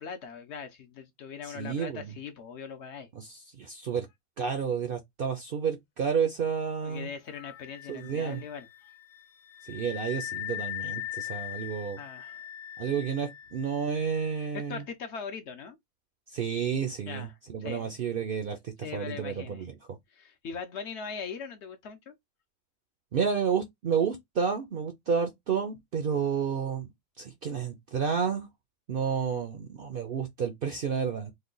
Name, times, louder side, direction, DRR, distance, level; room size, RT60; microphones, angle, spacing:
voice 1, 0.0-3.1 6.8-8.9 12.0-12.4 14.5-15.8 17.1-17.3 17.6-18.0 18.8-19.6 20.1-22.1, left 6 dB, 60° left, 0.8 m, -40 dB
voice 2, 1.4-2.2 3.1-4.1 4.4-7.1 7.9-8.4 9.6-12.0 12.8-14.8 16.3-20.0 23.1-26.9 27.2-28.5 28.9-31.3, right 6 dB, 60° right, 0.6 m, -31 dB
Wind instrument woodwind instrument, 7.3-14.8, left 13 dB, 80° left, 1.1 m, -41 dB
3.2 x 2.2 x 3.7 m
omnidirectional pair, 1.4 m